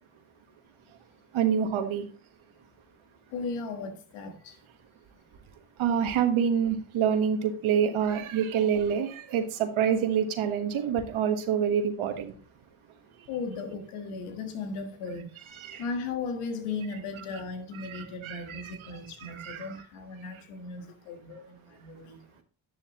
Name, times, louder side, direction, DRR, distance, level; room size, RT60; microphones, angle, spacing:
voice 1, 1.3-2.0 5.8-12.3 15.5-15.8 17.8-18.9 19.2-19.8, right 8 dB, 80° right, 1.4 m, -27 dB
voice 2, 3.3-4.5 13.3-15.3 15.8-22.2, left 4 dB, 90° left, 1.6 m, -36 dB
10.5 x 6.5 x 3.0 m
cardioid pair, 65°, 48 cm